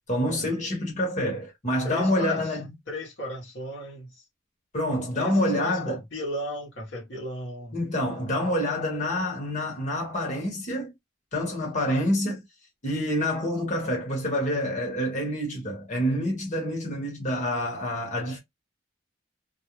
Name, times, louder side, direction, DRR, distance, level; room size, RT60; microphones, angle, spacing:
voice 1, 0.1-2.6 4.7-6.0 7.7-10.9 11.3-12.4 12.8-18.4, left 1 dB, 40° left, 1.2 m, -27 dB
voice 2, 1.8-2.6 2.9-4.2 5.1-7.8, equal, 70° left, 1.0 m, -35 dB
2.5 x 2.2 x 2.9 m
head